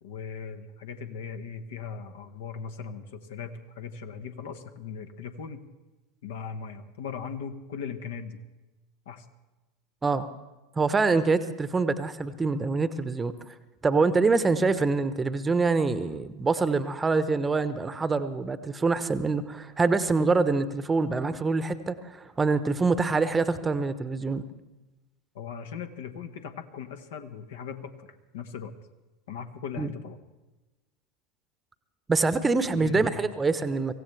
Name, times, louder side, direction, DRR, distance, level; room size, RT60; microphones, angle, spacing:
voice 1, 0.0-5.7 6.2-8.4 9.1-9.3 25.3-28.7 29.3-30.2 32.7-33.3, left 6 dB, 65° left, 8 dB, 1.1 m, -39 dB
voice 2, 10.8-13.3 13.8-24.4 29.8-29.9 32.1-33.9, right 4 dB, 15° right, 13 dB, 0.9 m, -25 dB
25.0 x 16.0 x 3.3 m, 1.1 s
figure-of-eight pair, 80°, 0 cm